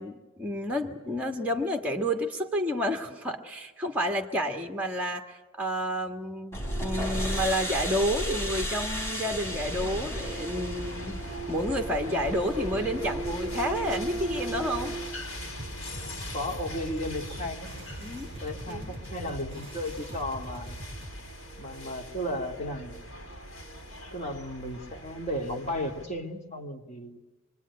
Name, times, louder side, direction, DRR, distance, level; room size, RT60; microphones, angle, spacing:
voice 1, 0.0-11.2 11.5-14.9 18.0-18.3 18.7-18.9, equal, 5° right, 3 dB, 1.5 m, -30 dB
sound 1, 6.5-15.0, right 1 dB, 10° left, 3.8 m, -34 dB
sound 2, 9.6-26.1, equal, 65° left, 5.9 m, -41 dB
sound 3, 15.6-21.2, right 1 dB, 30° right, 3.6 m, -42 dB
voice 2, 16.3-17.7 18.4-20.8 21.6-22.9 24.1-27.2, left 1 dB, 30° left, 2 dB, 2.3 m, -34 dB
25.5 x 24.0 x 9.7 m, 1.2 s
head